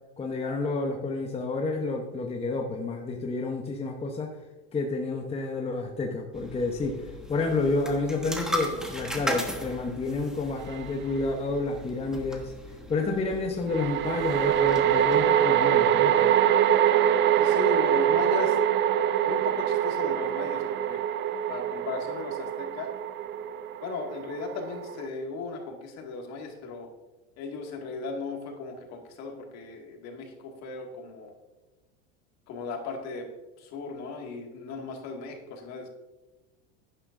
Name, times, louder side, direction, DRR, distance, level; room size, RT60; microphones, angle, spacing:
voice 1, 0.2-4.4 4.7-12.5 12.9-16.4, left 3 dB, 20° left, 3 dB, 0.9 m, -30 dB
sound 1, 6.3-15.2, equal, ahead, 1.2 m, -37 dB
sound 2, 10.7-10.8 13.7-25.1, right 10 dB, 35° right, 0.5 m, -24 dB
voice 2, 17.3-18.6 19.3-21.0 21.5-22.9 23.8-26.9 27.4-31.3 32.5-33.3 33.6-35.9, left 3 dB, 50° left, 2 dB, 2.1 m, -36 dB
11.0 x 9.9 x 2.6 m, 1.1 s
supercardioid pair, 115°, 33 cm